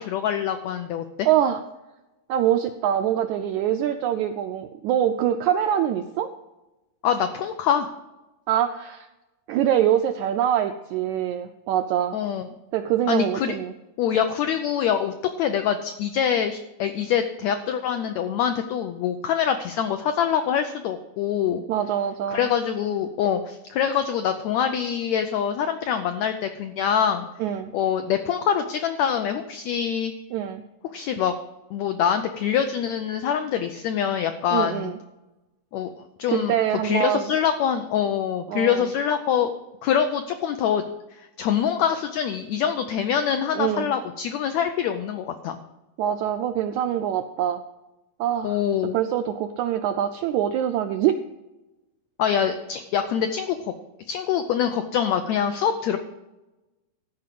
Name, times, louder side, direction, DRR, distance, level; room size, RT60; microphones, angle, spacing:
voice 1, 0.0-1.3 7.0-7.9 12.1-12.5 13.1-13.6 14.0-21.6 22.3-27.3 27.7-30.1 30.9-31.3 31.7-34.9 35.7-35.9 36.2-36.5 36.8-39.5 39.8-40.8 41.2-45.6 48.4-49.0 52.2-53.7 54.1-56.0, left 8 dB, 85° left, 7 dB, 1.6 m, -24 dB
voice 2, 1.2-1.6 2.3-6.3 8.5-9.1 9.5-12.2 12.7-13.7 21.7-22.5 27.4-27.7 30.3-30.6 34.5-35.0 36.3-37.3 38.5-38.9 43.5-43.9 46.0-47.6 48.2-48.6 48.9-51.2, right 10 dB, 85° right, 8 dB, 1.7 m, -24 dB
13.5 x 5.0 x 7.5 m, 1.0 s
omnidirectional pair, 3.9 m